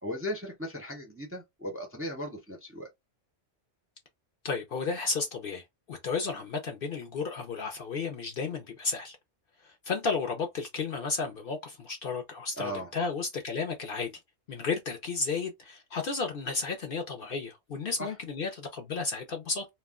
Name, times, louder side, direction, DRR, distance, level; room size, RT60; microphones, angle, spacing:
voice 1, 0.0-2.9 12.6-12.9 18.0-18.1, equal, 15° right, 0.5 m, -37 dB
voice 2, 4.4-9.2 9.8-14.1 14.5-19.7, left 4 dB, 60° left, 0.7 m, -33 dB
2.3 x 2.1 x 3.4 m
omnidirectional pair, 1.3 m